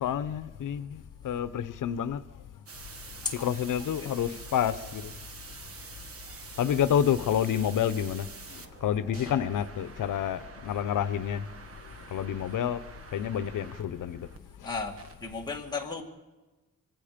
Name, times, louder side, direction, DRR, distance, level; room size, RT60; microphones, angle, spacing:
voice 1, 0.0-2.2 3.2-5.1 6.6-11.4 12.1-12.8 13.1-14.3, left 9 dB, 85° left, 0.8 m, -29 dB
sound 1, 2.7-14.4 15.0-15.2, right 4 dB, 45° right, 1.5 m, -47 dB
voice 2, 4.0-4.4 9.1-9.4 14.6-16.0, left 4 dB, 15° left, 2.3 m, -36 dB
26.0 x 25.0 x 5.1 m
wide cardioid pair, 165°, 31 cm